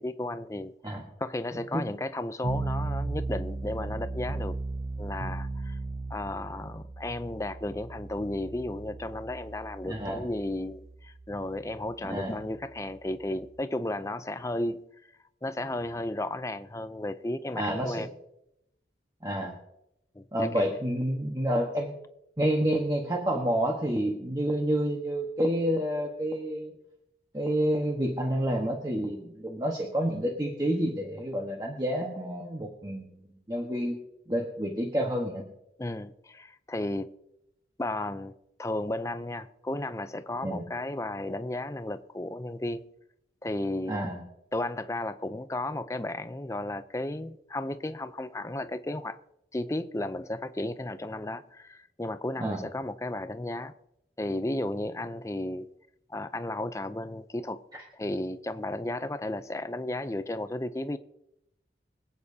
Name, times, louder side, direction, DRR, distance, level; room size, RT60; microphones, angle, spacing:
voice 1, 0.0-4.6 5.0-5.8 6.1-14.8 15.4-18.1 20.1-20.8 35.8-37.1 37.8-38.3 38.6-42.8 43.4-44.0 44.5-49.2 49.5-53.7 54.2-55.7 56.1-57.6 57.9-61.0, left 1 dB, 15° left, 0.5 m, -34 dB
sound 1, 2.4-13.6, right 3 dB, 45° right, 0.5 m, -36 dB
voice 2, 9.8-10.2 12.0-12.4 17.5-18.1 19.2-19.6 20.3-21.9 22.4-26.7 27.3-34.0 34.3-35.4 40.4-40.7 43.9-44.2 52.4-52.6 57.7-57.8, equal, 20° right, 1.2 m, -29 dB
25.0 x 8.9 x 2.8 m
head